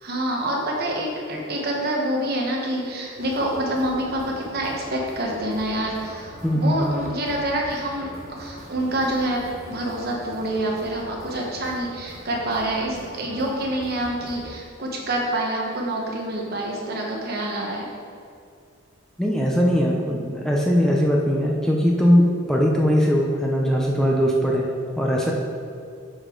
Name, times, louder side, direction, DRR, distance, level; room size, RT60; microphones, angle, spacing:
voice 1, 0.0-8.1 8.4-17.9, right 1 dB, 50° right, -1 dB, 1.2 m, -27 dB
sound 1, 3.2-14.5, equal, 35° right, 1.5 m, -43 dB
voice 2, 6.4-6.9 19.2-25.3, equal, 5° left, -2 dB, 0.5 m, -20 dB
8.2 x 5.1 x 3.8 m, 2.4 s
head